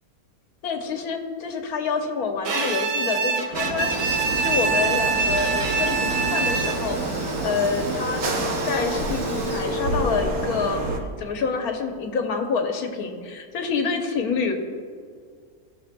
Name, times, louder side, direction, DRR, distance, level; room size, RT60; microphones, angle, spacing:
voice 1, 0.6-7.0 7.4-8.2 8.6-10.9 11.2-14.7, left 5 dB, 75° left, 4 dB, 1.4 m, -27 dB
Bowed string instrument, 2.4-7.0, right 4 dB, 85° right, 1.4 m, -24 dB
sound 1, 3.5-11.0, right 2 dB, 65° right, 1.4 m, -28 dB
Domestic sounds home sounds, 3.7-10.5, right 2 dB, 25° right, 0.8 m, -40 dB
16.0 x 6.4 x 2.3 m, 2.1 s
omnidirectional pair, 1.6 m